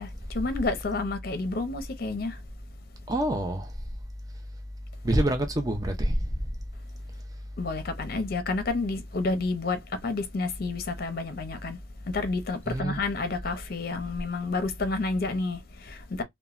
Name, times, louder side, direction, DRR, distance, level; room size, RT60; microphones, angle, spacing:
voice 1, 0.0-2.4 7.6-11.8 12.1-16.2, left 3 dB, 50° left, 0.6 m, -30 dB
voice 2, 3.1-3.7 5.0-6.3 12.7-13.0, right 1 dB, 20° right, 0.5 m, -26 dB
3.0 x 2.1 x 2.4 m
head